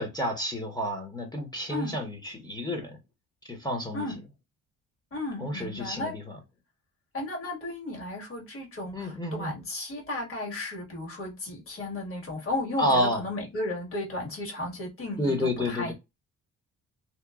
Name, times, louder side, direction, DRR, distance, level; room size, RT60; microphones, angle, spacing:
voice 1, 0.0-3.0 3.5-4.1 5.4-6.4 8.9-9.5 12.8-13.2 15.2-15.9, left 1 dB, 15° left, 0.8 m, -29 dB
voice 2, 5.1-6.2 7.1-15.9, left 2 dB, 45° left, 1.7 m, -34 dB
2.8 x 2.1 x 2.3 m
cardioid pair, 90°, 30 cm